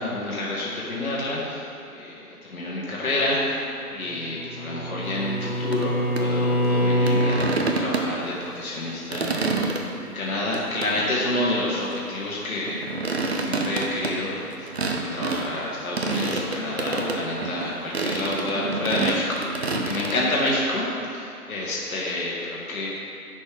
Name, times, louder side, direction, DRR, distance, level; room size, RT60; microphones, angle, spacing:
voice 1, 0.0-3.6 3.9-9.6 10.0-12.9 13.3-19.4 19.7-20.8 21.1-22.9, left 1 dB, 65° left, -5 dB, 1.5 m, -28 dB
Bowed string instrument, 4.0-7.4, equal, 15° left, 1.7 m, -24 dB
sound 1, 5.7-5.9 6.2-6.3 7.1-8.3 8.8-9.8 10.5-11.1 12.5-15.5 16.0-17.7 17.9-20.2, right 3 dB, 45° right, 0.6 m, -27 dB
9.9 x 4.3 x 3.4 m, 2.6 s
figure-of-eight pair, 155°, 46 cm